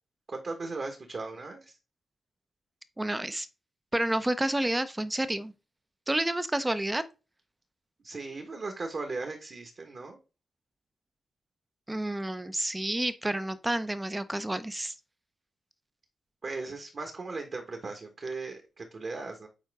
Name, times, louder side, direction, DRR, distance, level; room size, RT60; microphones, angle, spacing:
voice 1, 0.3-1.8 8.0-10.2 16.4-19.5, right 3 dB, 45° right, 1.3 m, -37 dB
voice 2, 3.0-3.5 3.9-5.5 6.1-7.0 11.9-14.9, right 1 dB, 10° right, 0.6 m, -29 dB
7.3 x 4.4 x 3.6 m
wide cardioid pair, 125°, 0 cm